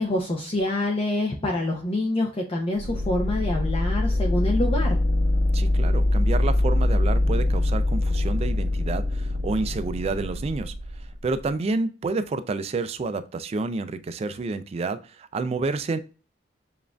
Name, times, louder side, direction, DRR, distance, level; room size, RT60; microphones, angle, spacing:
voice 1, 0.0-5.0, left 1 dB, 30° left, 0.5 m, -26 dB
sound 1, 2.8-11.5, left 1 dB, 80° left, 0.9 m, -23 dB
voice 2, 5.5-10.7 11.2-16.0, right 3 dB, 35° right, 0.3 m, -29 dB
7.0 x 2.5 x 2.2 m
head